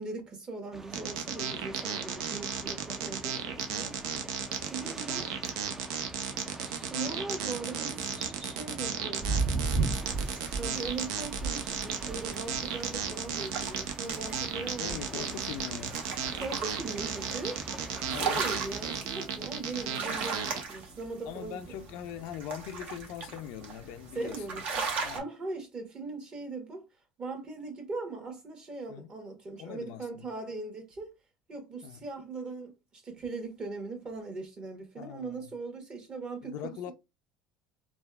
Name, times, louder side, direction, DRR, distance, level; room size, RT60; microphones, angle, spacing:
voice 1, 0.0-4.0 4.6-5.3 6.6-9.3 10.6-15.4 16.4-17.6 18.1-21.8 24.1-26.9 27.2-31.1 31.5-36.9, right 3 dB, 35° right, 1.2 m, -40 dB
sound 1, 0.7-19.1, right 2 dB, 15° right, 0.4 m, -46 dB
sound 2, 0.9-20.6, right 7 dB, 80° right, 0.5 m, -35 dB
sound 3, 9.2-25.2, right 4 dB, 55° right, 0.9 m, -36 dB
voice 2, 14.8-16.0 18.1-18.5 21.3-24.6 25.0-25.2 28.9-29.1 29.6-30.3 31.8-32.0 35.0-35.5 36.4-36.9, left 10 dB, 70° left, 0.4 m, -41 dB
3.3 x 2.3 x 2.3 m
supercardioid pair, 95°, 3 cm